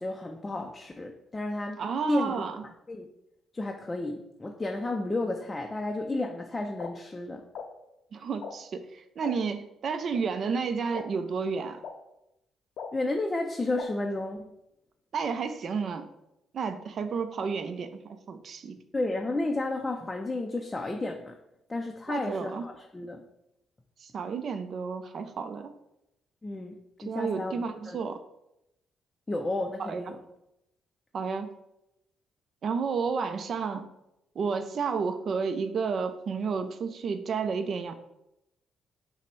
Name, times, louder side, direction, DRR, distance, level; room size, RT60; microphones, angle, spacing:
voice 1, 0.0-1.8 2.1-2.4 2.9-3.1 3.5-7.4 12.9-14.5 18.9-21.4 21.7-23.2 26.4-28.0 29.3-30.2, left 2 dB, 20° left, 3 dB, 0.4 m, -32 dB
voice 2, 1.8-2.6 8.1-11.8 15.1-16.1 16.5-18.8 22.1-22.6 24.0-25.7 27.1-28.2 29.8-30.0 31.1-31.5 32.6-33.9 34.4-37.9, right 5 dB, 55° right, 9 dB, 0.4 m, -31 dB
sound 1, 6.8-6.9 7.5-7.6 8.4-8.5 9.2-9.3 10.1-10.2 10.9-11.0 11.8-11.9 12.8-12.9 13.8-13.9, left 6 dB, 70° left, 0.5 m, -38 dB
5.7 x 2.1 x 4.6 m, 0.86 s
cardioid pair, 90°, 0 cm